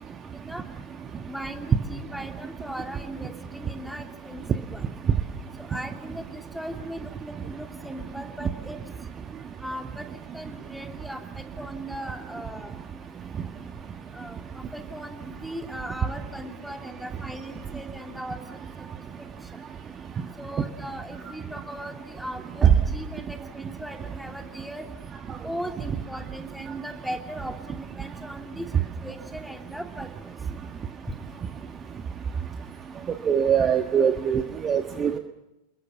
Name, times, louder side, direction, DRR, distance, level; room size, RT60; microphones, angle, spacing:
voice 1, 1.3-4.8 5.7-8.8 9.6-10.1 10.3-12.8 14.1-18.4 20.4-24.8 25.4-28.6 29.0-30.1, equal, ahead, 4 dB, 2.9 m, -38 dB
voice 2, 33.3-35.2, right 8 dB, 25° right, 8 dB, 1.4 m, -21 dB
28.0 x 22.0 x 7.1 m, 0.93 s
figure-of-eight pair, 90°, 0 cm